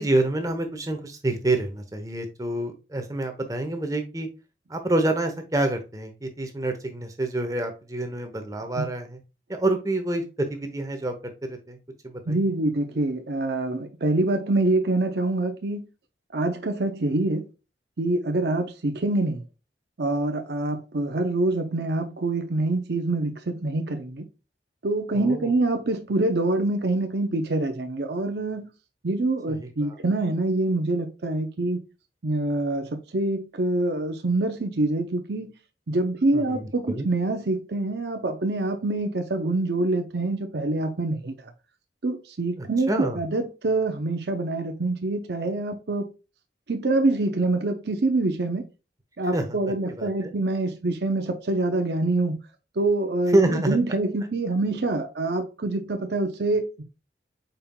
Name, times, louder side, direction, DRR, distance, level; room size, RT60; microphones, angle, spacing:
voice 1, 0.0-4.3 4.7-9.2 9.5-11.8 12.0-12.4 25.2-25.5 29.5-29.7 36.3-37.1 42.6-43.2 49.3-49.4 50.0-50.3 53.3-53.8, right 2 dB, 20° right, 0.9 m, -27 dB
voice 2, 12.3-15.8 16.3-17.5 18.0-19.5 20.0-24.3 24.8-28.7 29.0-31.8 32.2-35.5 35.9-41.4 42.0-46.1 46.7-48.6 49.2-52.4 52.8-56.8, right 2 dB, 75° right, 0.7 m, -25 dB
5.3 x 4.4 x 2.2 m
head